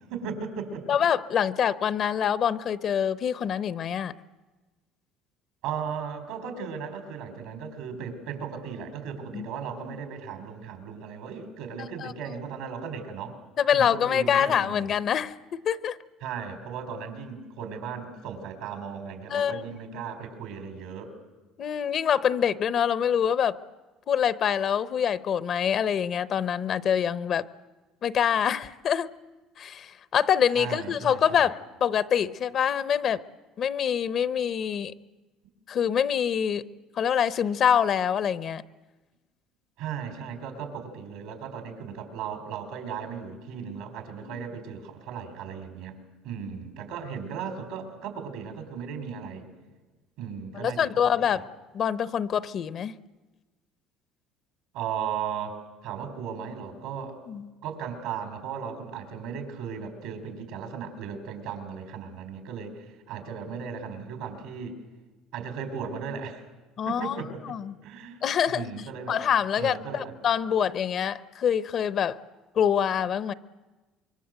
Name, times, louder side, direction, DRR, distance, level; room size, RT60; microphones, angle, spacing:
voice 1, 0.1-1.0 5.6-13.4 13.7-15.0 16.2-21.1 30.6-31.5 39.8-46.0 46.2-49.5 50.2-50.9 51.3-51.4 54.7-57.2 57.6-64.8 65.3-66.4 66.8-67.5 67.8-68.2 68.5-69.2 69.6-70.1, right 6 dB, 80° right, 6 dB, 4.4 m, -36 dB
voice 2, 0.9-4.1 9.3-9.5 9.8-10.0 11.8-12.1 13.6-16.0 19.3-19.8 21.6-23.6 24.1-27.4 28.0-29.1 29.6-33.2 33.6-34.9 35.7-36.6 37.0-38.6 44.2-44.4 50.5-51.4 51.7-52.9 57.3-57.5 66.8-67.2 67.5-67.7 68.2-68.7 69.1-72.2 72.6-73.3, left 8 dB, 50° left, 16 dB, 0.8 m, -25 dB
25.5 x 23.0 x 7.8 m, 1.2 s
cardioid pair, 110°, 0 cm